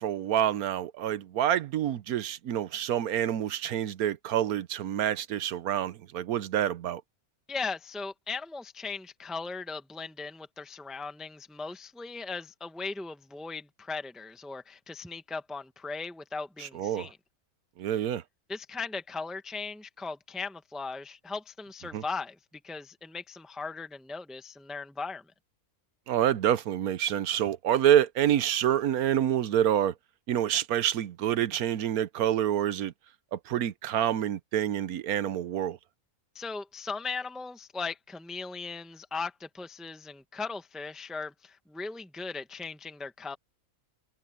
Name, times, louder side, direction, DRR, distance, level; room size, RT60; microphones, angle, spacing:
voice 1, 0.0-7.0 16.7-17.1 17.8-18.2 21.9-22.0 26.1-29.9 30.3-32.9 33.3-35.8, right 10 dB, 75° right, 1.2 m, -27 dB
voice 2, 7.5-17.2 18.5-22.4 22.6-25.2 36.3-43.4, left 4 dB, ahead, 1.1 m, -38 dB
omnidirectional pair, 1.6 m